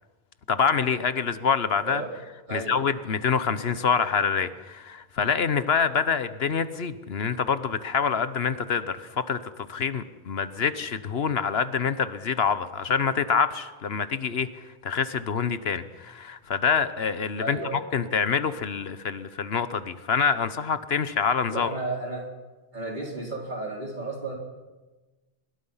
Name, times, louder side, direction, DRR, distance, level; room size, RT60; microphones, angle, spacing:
voice 1, 0.5-2.0 2.5-9.4 9.7-14.5 14.8-21.7, left 6 dB, 70° left, 13 dB, 1.2 m, -26 dB
voice 2, 2.5-2.8 17.4-17.8 21.5-22.3 22.7-24.3, right 2 dB, 45° right, 0 dB, 4.5 m, -33 dB
24.5 x 22.0 x 5.7 m, 1.2 s
omnidirectional pair, 1.1 m